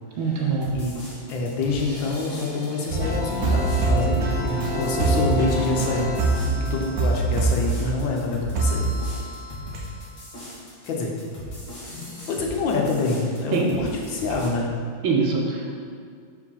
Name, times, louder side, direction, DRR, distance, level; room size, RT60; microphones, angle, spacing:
voice 1, 0.2-0.8 6.4-6.6 13.5-13.8 14.3-14.4 15.0-15.7, right 4 dB, 85° right, -1 dB, 1.8 m, -24 dB
sound 1, 0.6-14.5, left 1 dB, 40° left, 2.1 m, -39 dB
voice 2, 1.3-6.1 6.4-8.9 10.9-11.1 11.9-14.7, left 3 dB, 75° left, 0 dB, 1.7 m, -27 dB
sound 2, 2.9-8.1 8.6-9.4 9.7-9.8, right 2 dB, 55° right, 1.1 m, -24 dB
5.2 x 4.9 x 5.6 m, 2.1 s
omnidirectional pair, 2.1 m